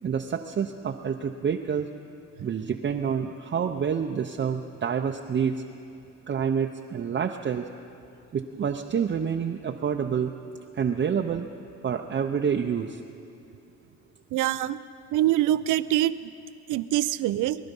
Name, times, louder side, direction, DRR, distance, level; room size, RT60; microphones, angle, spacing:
voice 1, 0.0-1.9 2.4-5.6 6.3-7.7 8.3-10.3 10.7-11.5 11.8-13.0, right 7 dB, 40° right, 3 dB, 0.7 m, -28 dB
voice 2, 14.3-14.8 15.1-16.1 16.7-17.6, right 14 dB, 90° right, 15 dB, 0.5 m, -24 dB
22.5 x 11.5 x 5.4 m, 2.6 s
cardioid pair, 90°, 30 cm